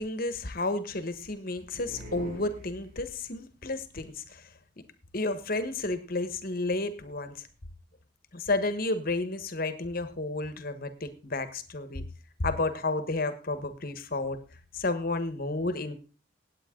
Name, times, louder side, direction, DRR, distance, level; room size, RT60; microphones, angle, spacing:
voice 1, 0.0-4.4 5.1-7.4 8.3-12.0 12.4-14.4 14.7-16.0, left 2 dB, 45° left, 11 dB, 1.3 m, -31 dB
sound 1, 1.7-3.3, equal, 45° right, 4.6 m, -44 dB
17.5 x 8.8 x 3.8 m, 0.35 s
head